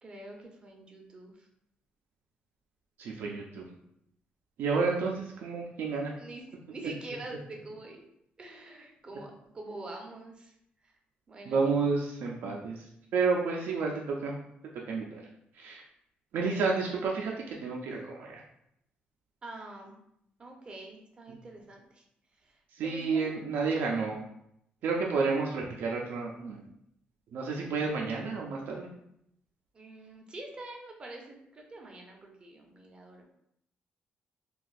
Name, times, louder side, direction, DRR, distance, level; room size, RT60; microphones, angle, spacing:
voice 1, 0.0-1.5 6.2-8.0 8.4-10.5 10.8-10.9 11.3-11.9 19.4-20.0 20.4-22.0 22.4-23.4 29.7-33.3, right 2 dB, 30° right, 1 dB, 0.6 m, -45 dB
voice 2, 3.0-3.7 4.6-6.1 11.5-12.8 13.1-14.4 14.9-15.2 15.6-15.8 16.3-18.4 21.3-21.4 22.7-24.2 24.8-26.6 27.3-28.9, right 4 dB, 75° right, -1 dB, 0.4 m, -30 dB
2.6 x 2.3 x 3.9 m, 0.75 s
cardioid pair, 150°, 3 cm